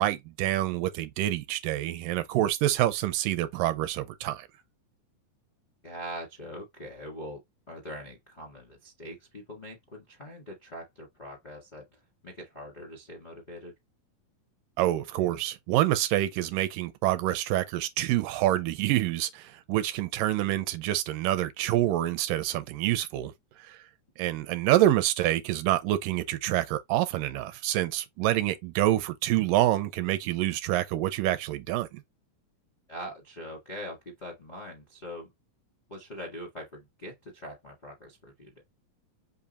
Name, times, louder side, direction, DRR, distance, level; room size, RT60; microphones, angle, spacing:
voice 1, 0.0-4.5 14.8-23.3 23.7-23.8 24.2-32.0, right 14 dB, 80° right, 2.1 m, -27 dB
voice 2, 5.8-7.4 7.7-13.7 32.9-35.3 35.9-38.6, equal, 35° left, 0.6 m, -42 dB
5.4 x 2.3 x 4.1 m
omnidirectional pair, 4.0 m